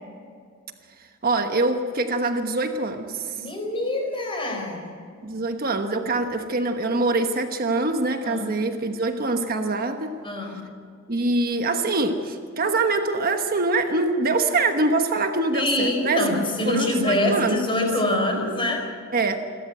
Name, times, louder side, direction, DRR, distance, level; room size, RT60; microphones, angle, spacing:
voice 1, 1.2-3.5 5.2-10.2 11.1-17.6 19.1-19.4, right 2 dB, 45° right, 6 dB, 1.2 m, -24 dB
voice 2, 3.4-4.8 8.2-8.5 10.2-10.6 15.5-18.8, left 1 dB, 25° left, 3 dB, 4.4 m, -25 dB
27.5 x 13.0 x 8.0 m, 2.2 s
head